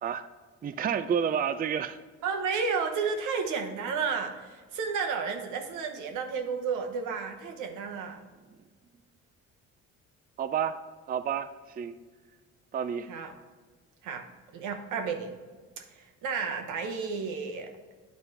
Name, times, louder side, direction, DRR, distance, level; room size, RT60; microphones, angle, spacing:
voice 1, 0.6-2.0 10.4-10.8 11.1-12.0 12.7-13.1, right 8 dB, 30° right, 11 dB, 0.4 m, -30 dB
voice 2, 2.2-8.2 13.1-13.3 14.0-14.3 14.5-15.4 15.8-17.7, right 5 dB, 90° right, 3 dB, 1.0 m, -32 dB
9.6 x 4.1 x 4.5 m, 1.4 s
cardioid pair, 90°, 30 cm